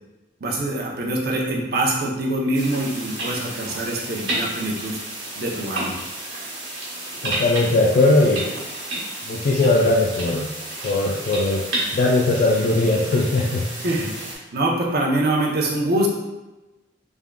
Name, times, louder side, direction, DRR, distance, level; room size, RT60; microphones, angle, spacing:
voice 1, 0.4-5.0 5.4-6.0 13.8-16.1, right 1 dB, 55° right, -2 dB, 0.6 m, -24 dB
sound 1, 2.5-14.4, right 1 dB, 85° right, 1.2 m, -31 dB
voice 2, 7.2-8.5 9.2-10.5 10.8-11.6 11.9-13.7, left 2 dB, 50° left, -3 dB, 0.3 m, -19 dB
3.5 x 3.5 x 2.2 m, 1.1 s
head